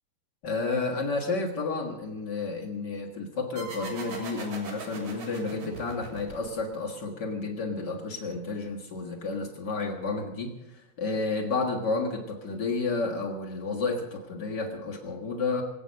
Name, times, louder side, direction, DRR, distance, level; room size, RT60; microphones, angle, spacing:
voice 1, 0.4-15.6, left 3 dB, 50° left, -1 dB, 1.2 m, -31 dB
sound 1, 3.6-6.9, right 3 dB, 55° right, 4.5 m, -41 dB
25.5 x 8.6 x 6.5 m, 1.0 s
omnidirectional pair, 4.6 m